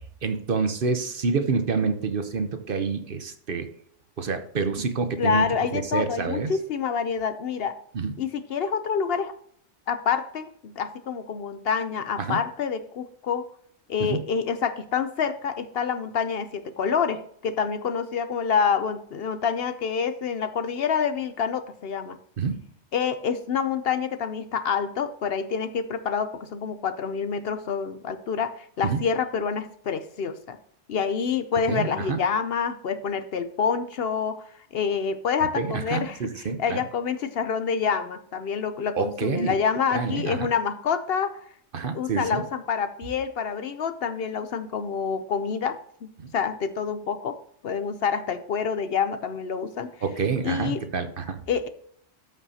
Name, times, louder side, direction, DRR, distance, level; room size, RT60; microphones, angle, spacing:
voice 1, 0.2-3.7 4.2-5.5 5.7-6.5 7.9-8.1 12.2-12.4 14.1-14.2 22.4-22.5 28.8-29.0 31.7-32.2 35.6-36.8 38.9-39.5 39.9-40.5 41.7-42.4 46.2-46.3 50.0-51.4, right 5 dB, 50° right, 8 dB, 0.9 m, -27 dB
voice 2, 5.2-7.7 8.2-9.3 9.9-13.5 13.9-22.2 22.9-30.6 30.9-34.4 34.7-41.4 41.9-47.4 47.6-49.9 50.4-50.8 51.5-51.7, left 6 dB, 60° left, 10 dB, 0.8 m, -27 dB
13.5 x 5.5 x 2.7 m, 0.62 s
omnidirectional pair, 1.2 m